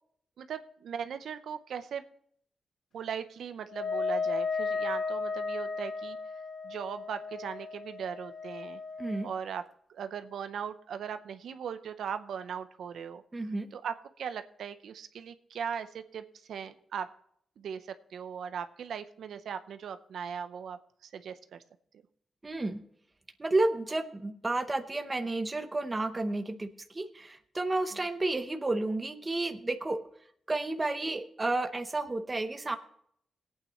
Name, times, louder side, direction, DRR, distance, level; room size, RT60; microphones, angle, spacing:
voice 1, 0.4-2.0 2.9-6.2 6.6-8.8 9.2-9.6 9.9-13.2 13.7-17.1 17.6-21.6 27.9-28.0, right 7 dB, 75° right, 10 dB, 0.7 m, -39 dB
Wind instrument woodwind instrument, 3.7-9.4, left 4 dB, 45° left, 1.1 m, -34 dB
voice 2, 13.3-13.7 22.4-22.8 23.4-30.0 30.5-32.8, right 2 dB, 15° right, 8 dB, 0.8 m, -31 dB
21.0 x 8.8 x 3.0 m, 0.67 s
wide cardioid pair, 160°, 0 cm